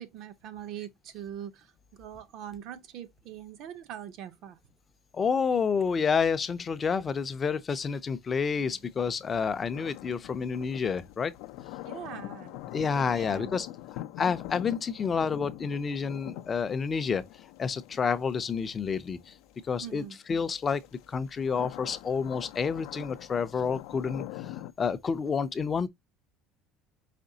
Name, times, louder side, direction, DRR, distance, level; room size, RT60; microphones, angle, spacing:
voice 1, 0.0-1.7 2.0-4.6 11.8-12.6 13.1-13.6 19.8-20.2, right 10 dB, 50° right, 0.5 m, -42 dB
voice 2, 5.1-11.3 12.7-13.7 13.9-17.2 17.6-19.3 19.7-20.8 21.1-24.5 24.8-25.9, left 6 dB, 20° left, 0.4 m, -29 dB
sound 1, 8.7-20.2 20.7-24.7, left 16 dB, 75° left, 0.4 m, -44 dB
5.0 x 3.0 x 2.7 m
cardioid pair, 165°, 0 cm